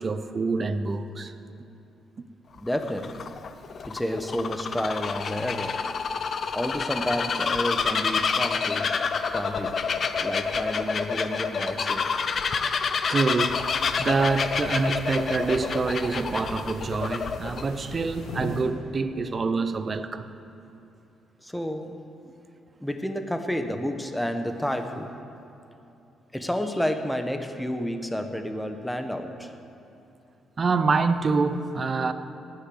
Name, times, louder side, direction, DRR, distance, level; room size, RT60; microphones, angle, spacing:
voice 1, 0.0-1.3 13.1-13.7 14.0-20.3 30.6-32.1, right 4 dB, 35° right, 0.7 m, -26 dB
Bird vocalization bird call bird song, 2.6-17.6, left 5 dB, 50° left, 0.7 m, -28 dB
voice 2, 2.6-3.3 3.8-5.8 6.5-8.9 9.3-9.7 10.2-12.1 21.4-22.0 22.8-25.1 26.3-29.6, equal, 5° left, 1.1 m, -30 dB
sound 1, 13.5-18.6, left 1 dB, 80° left, 4.1 m, -39 dB
18.5 x 6.6 x 7.9 m
cardioid pair, 90°, 0 cm